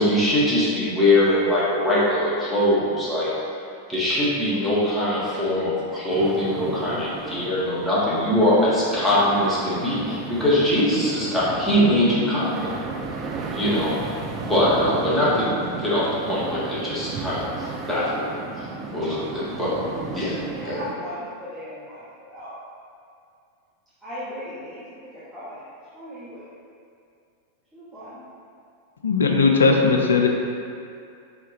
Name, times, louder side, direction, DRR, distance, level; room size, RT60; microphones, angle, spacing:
voice 1, 0.0-3.3 3.9-12.7 13.6-13.9 14.4-15.5 15.8-18.7 18.9-19.9 20.1-20.3 20.6-20.8, left 1 dB, 10° left, -9 dB, 1.4 m, -22 dB
sound 1, 6.1-21.0, right 4 dB, 30° right, 0.4 m, -34 dB
voice 2, 20.5-22.5 24.0-25.6 25.9-26.5 27.7-28.2, left 1 dB, 5° right, -13 dB, 1.0 m, -37 dB
voice 3, 29.0-30.3, left 4 dB, 70° left, 2 dB, 0.4 m, -18 dB
4.4 x 3.5 x 3.0 m, 2.4 s
figure-of-eight pair, 90°, 0 cm